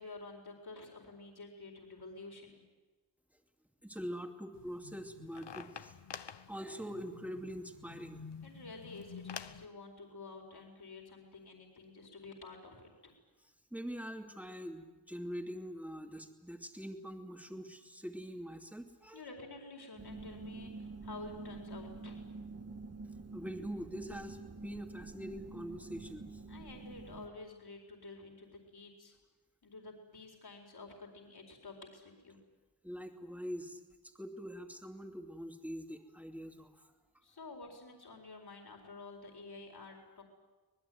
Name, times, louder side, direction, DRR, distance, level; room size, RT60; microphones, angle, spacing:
voice 1, 0.0-2.6 8.4-13.1 19.1-22.2 26.5-29.2 29.6-32.4 37.2-40.2, left 3 dB, 65° left, 1 dB, 4.4 m, -50 dB
voice 2, 3.8-8.2 13.7-19.2 23.3-26.4 32.8-36.9, equal, 5° right, 4 dB, 2.6 m, -44 dB
sound 1, 4.5-9.7, left 7 dB, 85° left, 1.1 m, -49 dB
sound 2, 20.0-27.3, right 3 dB, 35° right, 1.8 m, -47 dB
25.5 x 20.0 x 9.4 m, 1.2 s
wide cardioid pair, 105°, 41 cm